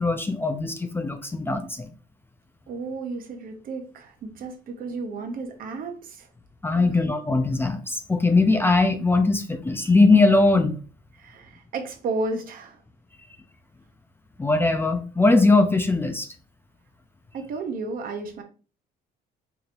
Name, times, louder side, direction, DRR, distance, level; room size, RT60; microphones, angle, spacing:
voice 1, 0.0-1.9 6.6-10.7 14.4-16.3, left 3 dB, 15° left, 7 dB, 0.4 m, -20 dB
voice 2, 2.7-6.3 6.7-6.9 11.1-12.8 17.3-18.4, right 3 dB, 55° right, 5 dB, 0.7 m, -33 dB
4.7 x 2.7 x 2.5 m, 0.37 s
cardioid pair, 110°, 17 cm